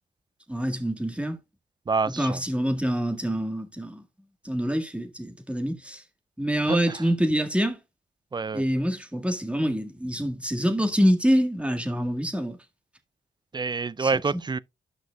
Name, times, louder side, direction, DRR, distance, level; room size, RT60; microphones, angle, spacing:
voice 1, 0.5-1.4 2.1-4.0 4.4-6.0 6.4-7.8 8.5-12.6 14.0-14.1, equal, 5° right, 1.8 m, -26 dB
voice 2, 1.9-2.4 6.6-7.0 8.3-8.6 13.5-14.6, right 4 dB, 20° right, 0.4 m, -27 dB
12.0 x 6.0 x 2.3 m
supercardioid pair, 45°, 20 cm